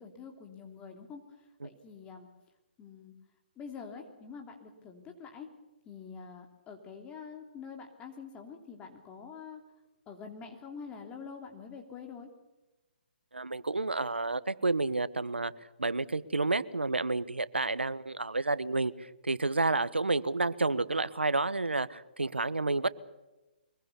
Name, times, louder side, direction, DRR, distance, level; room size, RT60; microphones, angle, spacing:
voice 1, 0.0-2.3 2.8-3.1 3.5-5.5 5.8-9.6 10.1-12.3, left 6 dB, 20° left, 3 dB, 3.0 m, -46 dB
voice 2, 13.3-15.5 15.8-22.9, right 3 dB, 90° right, 16 dB, 1.2 m, -30 dB
24.0 x 22.0 x 7.0 m, 1.0 s
figure-of-eight pair, 135°, 6 cm